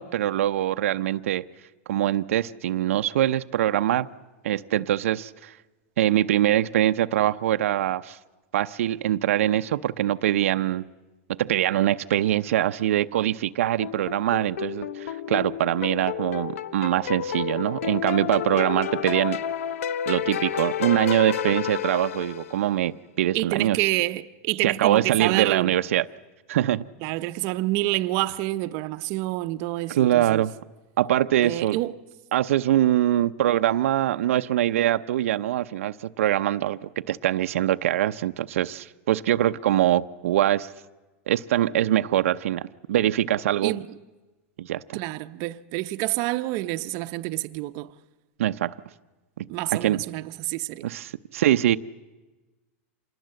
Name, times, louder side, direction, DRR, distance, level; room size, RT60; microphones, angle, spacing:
voice 1, 0.0-1.4 1.9-4.1 4.4-5.5 6.0-8.2 8.5-10.8 11.3-19.4 20.1-23.9 24.6-26.1 26.5-26.8 29.9-30.5 31.0-31.8 32.3-40.7 41.3-42.6 42.9-43.7 44.6-45.0 48.4-48.7 49.4-49.5 49.7-50.0 50.8-51.8, right 12 dB, 80° right, 0.7 m, -23 dB
sound 1, 13.8-22.7, left 9 dB, 85° left, 0.9 m, -31 dB
voice 2, 23.3-25.7 27.0-30.4 31.4-31.9 43.6-43.9 44.9-47.9 49.5-50.9, right 18 dB, 45° right, 0.8 m, -28 dB
26.5 x 20.0 x 7.7 m
supercardioid pair, 150°, 7 cm